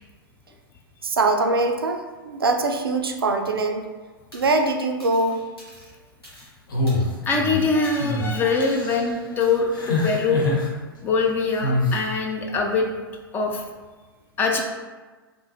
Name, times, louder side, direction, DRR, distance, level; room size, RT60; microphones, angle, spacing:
voice 1, 1.0-3.8 4.3-5.4, right 3 dB, 75° right, 5 dB, 0.4 m, -22 dB
sound 1, 4.3-4.7 5.0-6.5 6.9-7.4 7.8-8.2 8.6-8.9 9.4-9.6, equal, 85° left, 1.3 m, -46 dB
sound 2, 6.7-7.6 8.0-8.2 8.6-9.1 9.7-10.7 11.6-12.0, left 2 dB, 60° left, 0.7 m, -24 dB
voice 2, 7.2-10.5 11.0-12.9 13.3-13.6 14.4-14.6, left 4 dB, 15° left, 1 dB, 0.3 m, -23 dB
3.5 x 2.5 x 2.8 m, 1.4 s
figure-of-eight pair, 100°, 12 cm